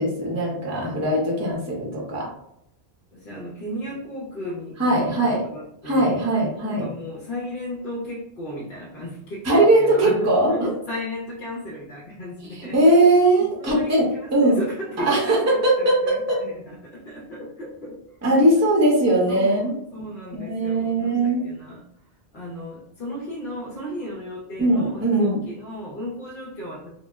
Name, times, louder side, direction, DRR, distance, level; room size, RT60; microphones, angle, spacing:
voice 1, 0.0-2.3 4.8-5.4 5.8-6.8 9.4-10.5 12.6-14.6 15.0-16.4 18.2-19.7 20.3-21.4 24.6-25.4, right 1 dB, 20° right, -3 dB, 0.6 m, -20 dB
voice 2, 3.1-6.2 6.6-12.8 13.4-18.0 18.4-18.5 19.3-19.7 19.9-21.9 22.3-26.9, equal, 60° left, -5 dB, 0.8 m, -35 dB
2.2 x 2.0 x 3.3 m, 0.77 s
omnidirectional pair, 1.0 m